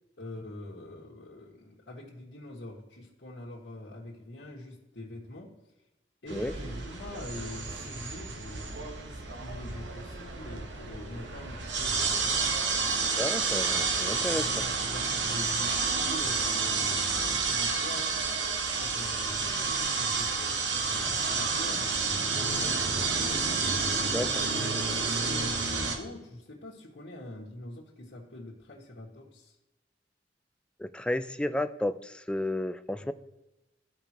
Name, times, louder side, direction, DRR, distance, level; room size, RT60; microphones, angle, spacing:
voice 1, 0.2-5.5 6.2-12.4 14.2-18.1 18.7-23.6 24.0-24.2 25.0-29.5 32.9-33.1, left 1 dB, 70° left, -7 dB, 1.6 m, -44 dB
sound 1, 6.3-26.0, right 4 dB, 80° right, 1.1 m, -30 dB
voice 2, 13.2-14.5 24.1-24.4 30.8-33.1, left 1 dB, 5° left, 11 dB, 0.3 m, -32 dB
13.5 x 5.4 x 2.9 m, 1.0 s
head